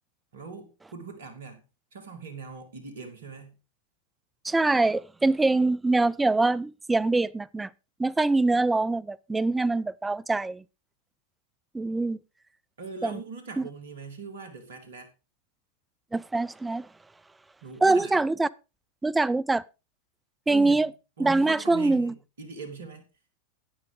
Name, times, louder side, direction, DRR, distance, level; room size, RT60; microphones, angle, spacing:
voice 1, 0.3-1.6 1.9-3.5 12.8-15.1 17.6-18.2 20.5-20.8 21.2-23.1, right 4 dB, 65° right, 2.5 m, -41 dB
voice 2, 4.4-7.7 8.0-10.6 11.7-12.2 13.0-13.2 13.6-13.7 16.1-16.9 17.8-18.5 19.0-19.6 20.5-20.9 21.2-22.1, right 3 dB, 10° right, 0.5 m, -24 dB
11.5 x 9.6 x 3.8 m
figure-of-eight pair, 90°, 0 cm